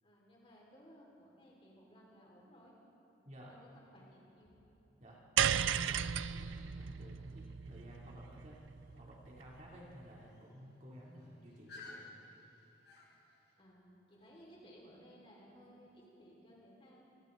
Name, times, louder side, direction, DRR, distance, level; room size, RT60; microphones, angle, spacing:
voice 1, 0.0-2.7 3.5-4.6 13.6-17.2, equal, 30° left, -4 dB, 5.6 m, -59 dB
voice 2, 3.2-3.6 5.0-5.2 5.6-8.6 8.9-12.1, equal, 40° right, -5 dB, 3.6 m, -54 dB
sound 1, 5.4-9.8, right 8 dB, 85° right, 0.5 m, -35 dB
sound 2, 5.5-13.5, left 3 dB, 60° left, 5.7 m, -59 dB
29.0 x 24.5 x 4.2 m, 3.0 s
head